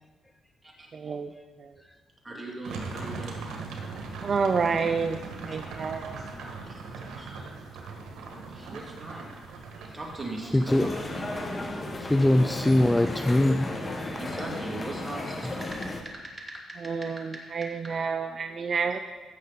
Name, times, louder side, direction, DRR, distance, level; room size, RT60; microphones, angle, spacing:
voice 1, 0.9-1.3 1.6-1.8 4.2-6.3 16.8-19.0, right 5 dB, 45° right, 7 dB, 0.5 m, -29 dB
voice 2, 2.2-3.4 5.5-5.6 6.7-6.8 7.2-7.4 8.5-9.3 9.9-10.6 11.0-11.3 14.2-15.7 16.5-16.6, right 2 dB, 15° right, -1 dB, 2.6 m, -39 dB
sound 1, 2.6-15.6, right 4 dB, 75° right, 1.7 m, -41 dB
voice 3, 10.4-10.9 11.5-11.6 12.0-13.8, left 1 dB, 10° left, 9 dB, 0.4 m, -22 dB
sound 2, 10.7-16.0, left 2 dB, 30° left, 1.3 m, -34 dB
16.0 x 6.5 x 4.1 m, 1.4 s
cardioid pair, 90°, 0 cm